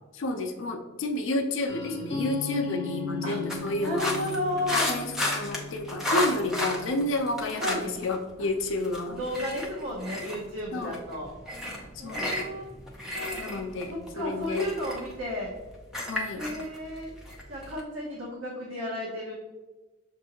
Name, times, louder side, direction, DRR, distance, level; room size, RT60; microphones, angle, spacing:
voice 1, 0.1-4.0 4.7-9.1 10.7-11.0 11.9-12.3 13.4-14.7 16.1-16.4, left 2 dB, 65° left, 4 dB, 0.4 m, -30 dB
sound 1, 1.7-7.4, left 4 dB, 30° left, 0.9 m, -36 dB
sound 2, 3.5-8.1 8.4-17.8, left 1 dB, ahead, 0.5 m, -33 dB
voice 2, 3.8-4.9 7.5-7.9 9.1-11.3 12.0-12.7 13.1-13.6 14.1-15.5 16.3-17.2 17.5-19.3, left 1 dB, 65° right, -4 dB, 0.8 m, -33 dB
6.2 x 2.6 x 2.8 m, 1.1 s
head